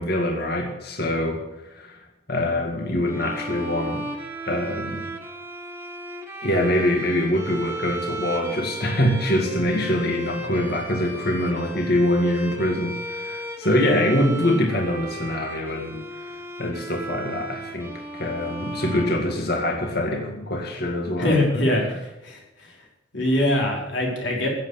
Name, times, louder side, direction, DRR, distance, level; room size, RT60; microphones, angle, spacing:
voice 1, 0.0-2.0 2.3-4.1 4.4-5.1 6.4-16.0 16.3-21.4, left 1 dB, 55° left, 2 dB, 2.2 m, -24 dB
sound 1, 3.1-19.9, right 1 dB, 10° right, 1.7 m, -35 dB
voice 2, 21.2-21.8 22.2-22.4 23.1-24.5, left 1 dB, 70° left, -1 dB, 4.8 m, -22 dB
15.5 x 8.2 x 8.6 m, 1.0 s
head